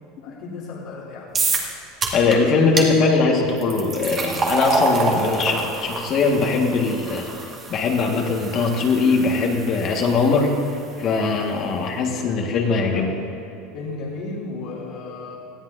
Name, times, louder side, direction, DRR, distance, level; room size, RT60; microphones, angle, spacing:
voice 1, 0.2-1.3 12.9-13.2 13.7-15.4, left 3 dB, 65° left, -7 dB, 2.8 m, -34 dB
sound 1, 1.3-1.7 2.0-2.4 2.8-2.9 3.6-10.7, right 3 dB, 30° right, 2.1 m, -27 dB
voice 2, 2.1-7.3 7.7-10.5 11.0-13.1, left 4 dB, 45° left, 1 dB, 1.7 m, -21 dB
19.5 x 13.5 x 2.7 m, 2.9 s
supercardioid pair, 120°, 0 cm